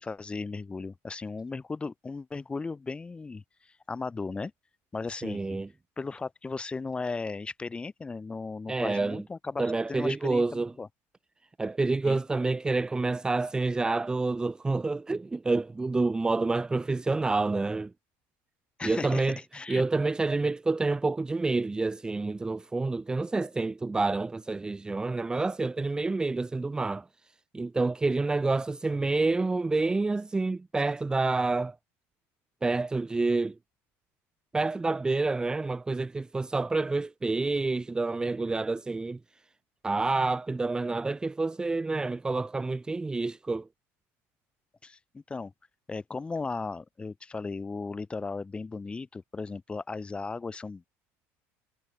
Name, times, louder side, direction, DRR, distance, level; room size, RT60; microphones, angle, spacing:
voice 1, 0.0-4.5 4.9-5.6 6.0-10.9 12.0-12.2 18.8-19.3 19.5-19.8 44.8-45.5 45.9-50.9, left 4 dB, 15° left, 7.2 m, -36 dB
voice 2, 5.2-5.7 8.7-9.2 9.6-10.7 11.6-17.9 18.8-19.4 19.7-27.1 27.5-31.8 32.6-33.5 34.5-39.2 39.8-43.7, right 3 dB, 10° right, 1.2 m, -28 dB
cardioid pair, 130°, 6 cm